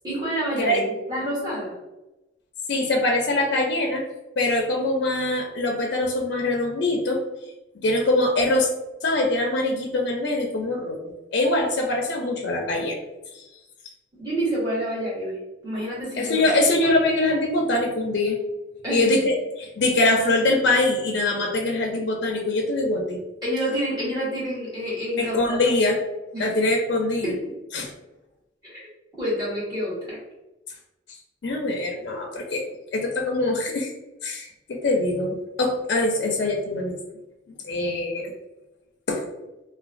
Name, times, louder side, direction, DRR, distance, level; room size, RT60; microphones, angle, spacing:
voice 1, 0.0-1.7 14.2-15.4 15.6-16.4 18.8-19.2 23.4-25.6 26.3-26.4 27.2-27.3 28.6-28.8 29.2-30.2, equal, 25° right, -8 dB, 1.2 m, -28 dB
voice 2, 2.7-4.1 4.4-7.2 7.8-8.7 9.0-11.0 11.3-13.0 13.4-13.5 16.1-18.4 18.9-23.2 25.2-26.0 26.4-27.3 27.7-27.9 31.4-32.6 32.9-33.9 34.2-37.0 37.6-38.3 39.1-39.3, left 2 dB, 70° left, 1 dB, 0.4 m, -23 dB
2.9 x 2.2 x 2.5 m, 1.0 s
head